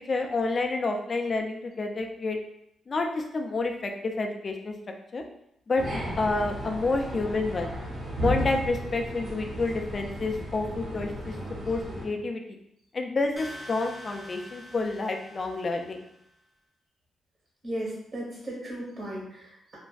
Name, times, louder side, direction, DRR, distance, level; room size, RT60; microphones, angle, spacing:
voice 1, 0.0-2.4 2.9-4.7 5.1-5.2 5.7-7.7 8.2-11.3 11.6-12.6 12.9-16.0, left 3 dB, 45° left, 3 dB, 0.3 m, -29 dB
sound 1, 5.8-12.0, equal, 65° right, 1.0 m, -34 dB
sound 2, 13.4-16.3, equal, 5° right, 0.6 m, -45 dB
voice 2, 17.6-19.8, right 1 dB, 50° right, -4 dB, 1.3 m, -36 dB
2.5 x 2.1 x 2.3 m, 0.76 s
cardioid pair, 65°, 0 cm